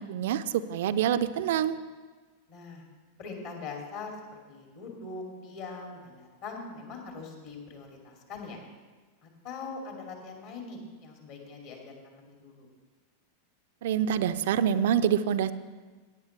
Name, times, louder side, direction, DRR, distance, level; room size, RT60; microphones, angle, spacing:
voice 1, 0.0-1.8 13.8-15.5, right 9 dB, 55° right, 13 dB, 0.5 m, -26 dB
voice 2, 2.5-2.8 3.2-8.6 9.2-12.7, left 4 dB, 50° left, 1 dB, 2.6 m, -42 dB
17.5 x 9.4 x 3.3 m, 1.4 s
figure-of-eight pair, 90°, 0 cm